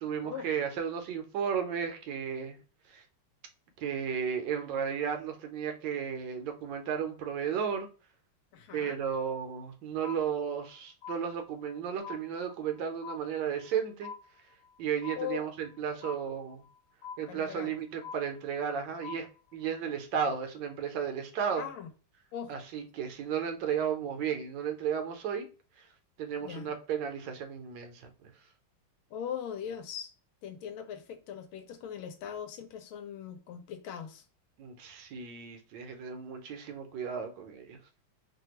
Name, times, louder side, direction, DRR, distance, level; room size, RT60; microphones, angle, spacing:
voice 1, 0.0-2.6 2.9-3.0 3.8-7.9 8.7-14.1 14.8-16.6 17.2-21.6 22.5-25.5 25.8-25.9 26.2-28.3 34.6-37.8, right 7 dB, 70° right, 1.2 m, -34 dB
voice 2, 8.5-9.0 15.1-15.5 17.3-17.7 21.6-21.9 22.3-22.5 26.4-26.7 29.1-30.1 30.4-34.2, left 8 dB, 80° left, 1.4 m, -40 dB
sound 1, 10.0-10.7 11.0-11.8 12.0-12.8 13.0-13.8 14.0-14.8 15.0-15.8 16.0-16.8 17.0-17.8 18.0-18.8 19.0-19.8, left 6 dB, 45° left, 0.9 m, -45 dB
3.3 x 2.2 x 2.9 m
omnidirectional pair, 2.2 m